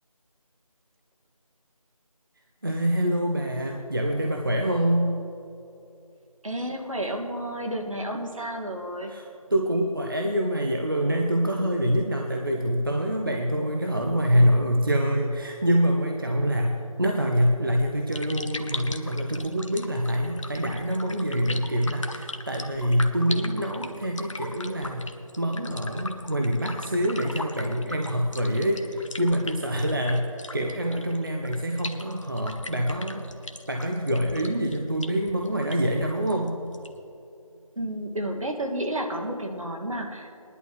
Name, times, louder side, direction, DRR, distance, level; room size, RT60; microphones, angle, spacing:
voice 1, 2.6-5.1 9.1-25.1 25.4-33.3 33.7-36.6, equal, 35° right, 2 dB, 0.6 m, -25 dB
voice 2, 6.4-9.1 37.7-40.5, right 1 dB, 65° right, 1 dB, 1.7 m, -31 dB
sound 1, 18.0-37.1, left 2 dB, 60° left, 0.8 m, -40 dB
18.5 x 11.0 x 3.0 m, 2.7 s
figure-of-eight pair, 175°, 18 cm